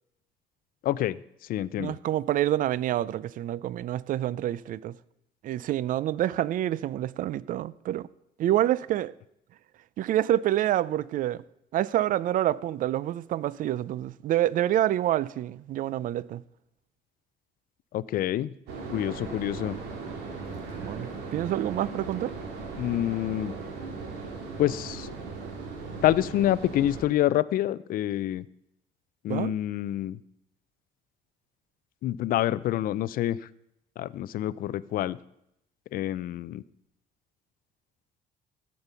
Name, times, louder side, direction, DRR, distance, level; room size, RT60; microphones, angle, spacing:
voice 1, 0.8-1.2 1.5-2.0 17.9-18.5 18.9-19.8 22.8-23.5 24.6-25.1 26.0-28.4 29.2-30.2 32.0-33.4 34.0-35.2 35.9-36.6, left 13 dB, 60° left, 0.4 m, -27 dB
voice 2, 1.8-4.9 5.4-8.1 8.4-9.1 10.0-11.4 11.7-16.4 20.7-22.3 29.3-29.5, right 13 dB, 55° right, 0.4 m, -27 dB
sound 1, 18.7-27.0, right 4 dB, 80° right, 2.2 m, -38 dB
14.0 x 5.3 x 5.6 m
cardioid pair, 110°, 17 cm